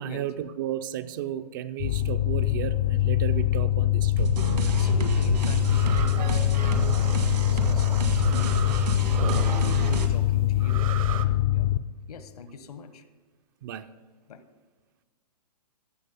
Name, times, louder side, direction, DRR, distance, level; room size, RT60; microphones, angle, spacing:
voice 1, 0.0-4.4 13.6-13.9, right 11 dB, 30° right, 11 dB, 0.4 m, -34 dB
sound 1, 1.8-11.8, left 14 dB, 30° left, 0.4 m, -24 dB
sound 2, 4.2-10.1, right 4 dB, 80° right, 1.8 m, -29 dB
voice 2, 4.6-11.7 12.1-13.0 14.3-14.4, left 3 dB, 65° left, 11 dB, 1.1 m, -43 dB
sound 3, 5.2-11.3, right 9 dB, 55° right, 0.8 m, -37 dB
16.0 x 6.3 x 5.2 m, 1.4 s
hypercardioid pair, 135°, 21 cm